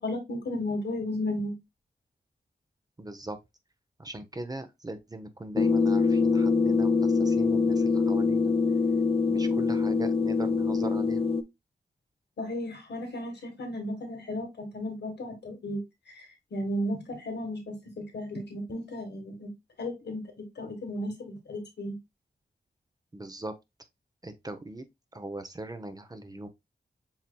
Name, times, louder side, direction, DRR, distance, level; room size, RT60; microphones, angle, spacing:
voice 1, 0.0-1.6 12.4-16.3 16.5-19.5 19.8-22.0, left 1 dB, 85° left, 1.4 m, -34 dB
voice 2, 3.0-3.4 4.0-8.5 9.3-11.2 23.1-23.5 24.2-24.8 25.1-26.5, right 2 dB, 20° right, 0.7 m, -40 dB
sound 1, 5.6-11.4, left 4 dB, 35° left, 0.5 m, -24 dB
7.2 x 2.8 x 2.2 m
wide cardioid pair, 75°, 17 cm